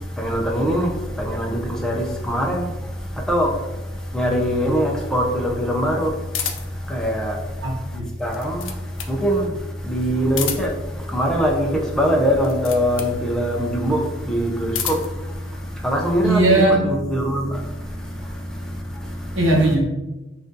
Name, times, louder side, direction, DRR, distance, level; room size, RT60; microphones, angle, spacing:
voice 1, 0.2-2.7 3.2-3.5 4.1-6.2 6.9-7.4 8.2-8.8 9.1-9.5 9.8-10.7 11.0-15.4 15.8-19.4, equal, 5° left, 0.5 m, -22 dB
sound 1, 6.3-6.9 8.1-9.2 10.2-10.9 12.4-13.2 14.4-15.2, left 8 dB, 70° left, 0.5 m, -30 dB
voice 2, 7.6-8.0 16.2-16.9 19.3-19.8, right 2 dB, 65° right, 0.8 m, -18 dB
5.7 x 2.5 x 2.6 m
head